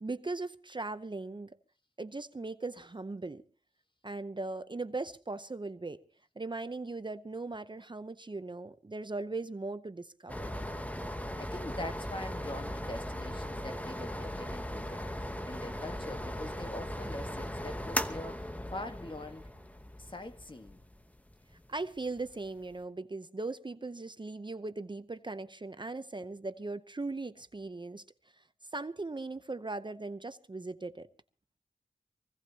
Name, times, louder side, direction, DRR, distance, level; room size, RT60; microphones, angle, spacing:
voice 1, 0.0-1.6 2.0-3.4 4.0-6.0 6.4-10.5 21.7-28.0 28.4-28.5 28.7-31.1, right 3 dB, 30° right, 0.7 m, -39 dB
sound 1, 10.3-22.7, equal, 10° left, 1.0 m, -38 dB
voice 2, 11.3-19.5 20.0-20.8, left 1 dB, 30° left, 1.4 m, -44 dB
24.0 x 17.0 x 2.8 m
wide cardioid pair, 70°, 16 cm